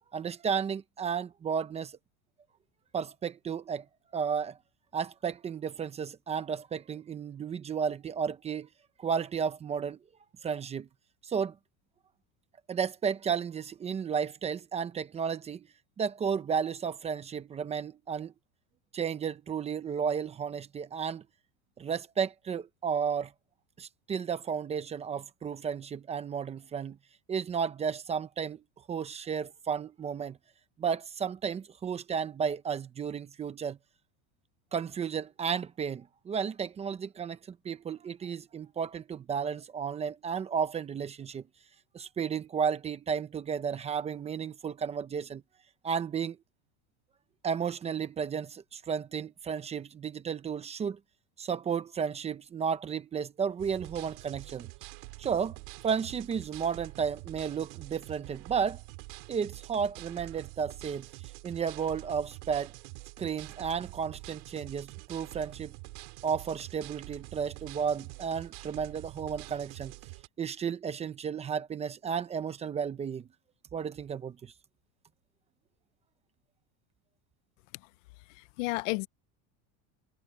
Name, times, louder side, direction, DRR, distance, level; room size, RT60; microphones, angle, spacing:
voice 1, 0.1-1.9 2.9-3.9 4.1-4.6 4.9-8.7 9.0-10.0 10.4-10.9 11.2-11.5 12.7-15.7 16.0-18.3 18.9-21.2 21.8-23.3 23.8-27.0 27.3-28.6 28.9-30.4 30.8-33.8 34.7-41.4 41.9-45.4 45.8-46.4 47.4-51.0 51.4-54.7 55.2-55.6 55.8-58.8 59.3-61.1 61.4-62.7 63.2-65.8 66.2-69.9 70.4-73.3 73.7-74.5, right 7 dB, 15° right, 0.7 m, -33 dB
sound 1, 53.6-70.3, right 29 dB, 60° right, 3.5 m, -46 dB
voice 2, 78.3-79.1, left 24 dB, 70° left, 0.9 m, -33 dB
supercardioid pair, 165°, 39 cm